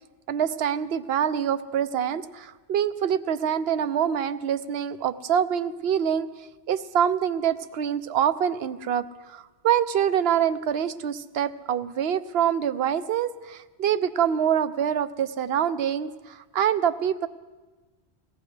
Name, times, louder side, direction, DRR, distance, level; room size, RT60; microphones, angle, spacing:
voice 1, 0.3-6.3 6.7-17.3, right 9 dB, 70° right, 13 dB, 0.9 m, -25 dB
22.0 x 17.5 x 3.3 m, 1.2 s
omnidirectional pair, 1.1 m